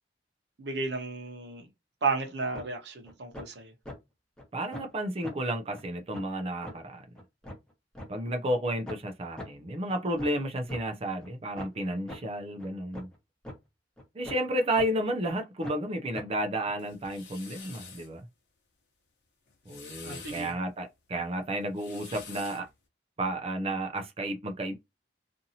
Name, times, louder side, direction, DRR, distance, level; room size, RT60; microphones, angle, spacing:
voice 1, 0.6-1.7 2.0-3.7 20.0-20.5, right 4 dB, 65° right, 0.8 m, -33 dB
sound 1, 2.5-2.6 3.0-3.4 3.8-3.9 4.4-4.5 4.7-4.9 5.2-5.3 5.7-5.8 6.1-6.2 6.6-6.7 7.1-8.1 8.5-8.6 8.9-9.0 9.4-9.5 9.9-10.8 11.2-11.3 11.6-11.7 12.1-12.2 12.6-12.7 12.9-13.1 13.4-13.6 14.0-14.5 14.8-14.9 15.3-15.4 15.6-15.8 16.1-16.2 16.6-16.7, left 1 dB, 5° left, 0.8 m, -41 dB
voice 2, 4.5-7.1 8.1-13.1 14.1-18.3 19.7-22.7 23.2-24.7, right 1 dB, 35° right, 0.4 m, -32 dB
sound 2, 16.8-18.1 19.5-20.5 21.6-22.7, left 5 dB, 70° left, 0.9 m, -47 dB
2.7 x 2.5 x 2.7 m
head